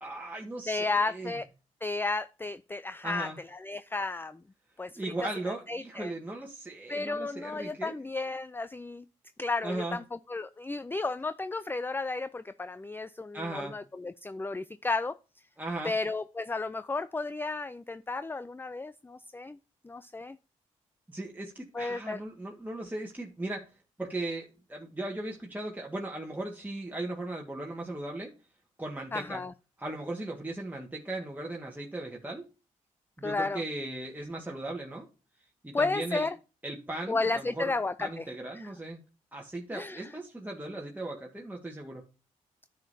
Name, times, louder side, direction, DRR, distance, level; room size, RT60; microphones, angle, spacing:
voice 1, 0.0-1.3 3.0-3.4 5.0-8.0 9.6-10.0 13.3-13.8 15.6-15.9 21.1-23.7 24.0-28.3 28.8-29.4 29.8-32.4 33.2-35.1 35.6-36.3 36.6-37.7 38.0-39.0 39.3-42.0, right 2 dB, 10° right, 1.7 m, -37 dB
voice 2, 0.7-1.4 1.8-4.4 4.8-5.1 5.7-6.1 6.9-9.0 9.4-15.1 15.8-19.6 19.8-20.4 21.7-22.2 29.1-29.5 33.2-33.6 35.7-36.3 37.1-38.3 38.6-38.7 39.7-40.1, left 3 dB, 15° left, 0.4 m, -33 dB
10.5 x 6.4 x 2.7 m
supercardioid pair, 45°, 15 cm